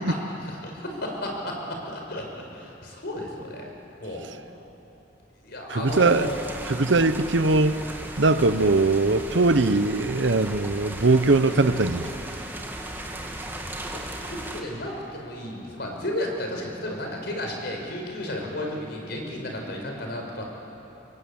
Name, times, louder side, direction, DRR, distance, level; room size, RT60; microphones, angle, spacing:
voice 1, 0.4-2.3 2.5-3.7 4.0-4.3 5.4-6.4 13.9-14.0 14.3-20.5, left 1 dB, 60° left, 1 dB, 5.2 m, -33 dB
voice 2, 5.7-6.3 6.7-7.8 8.2-12.1, right 3 dB, 65° right, 12 dB, 0.9 m, -21 dB
sound 1, 5.9-14.6, right 1 dB, 10° right, 2.3 m, -36 dB
26.5 x 22.0 x 8.8 m, 3.0 s
head